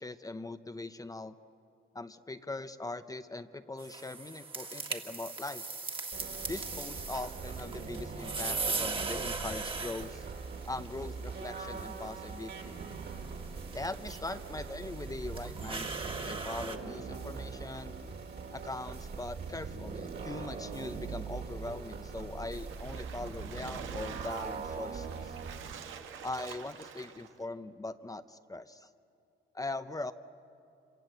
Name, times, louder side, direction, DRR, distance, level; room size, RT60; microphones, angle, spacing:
voice 1, 0.0-1.3 1.9-5.6 6.5-10.3 10.7-12.8 13.7-17.9 18.5-25.4 26.2-28.9 29.5-30.1, left 2 dB, 15° left, 10 dB, 0.8 m, -41 dB
sound 1, 3.8-16.8, right 3 dB, 25° right, 1.8 m, -40 dB
sound 2, 6.1-25.7, right 5 dB, 55° right, 2.6 m, -41 dB
Splash splatter, 22.5-27.4, right 8 dB, 80° right, 1.7 m, -47 dB
26.0 x 26.0 x 8.0 m, 2.7 s
cardioid pair, 90°, 20 cm